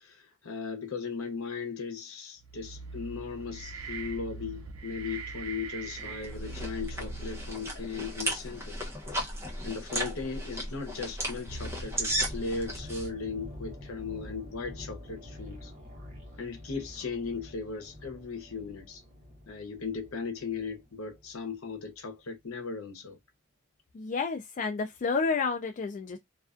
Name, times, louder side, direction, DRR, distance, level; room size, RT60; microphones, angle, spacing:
voice 1, 0.0-8.8 9.6-15.7 16.4-19.0 19.5-23.2, left 5 dB, 80° left, 0.8 m, -37 dB
sound 1, 2.4-7.7, right 4 dB, 85° right, 0.5 m, -42 dB
sound 2, 6.0-13.1, right 1 dB, 10° right, 0.7 m, -35 dB
sound 3, 11.4-21.4 21.7-21.9, left 1 dB, 35° right, 1.0 m, -46 dB
voice 2, 23.9-26.2, left 4 dB, 35° left, 0.3 m, -30 dB
2.4 x 2.3 x 2.4 m
head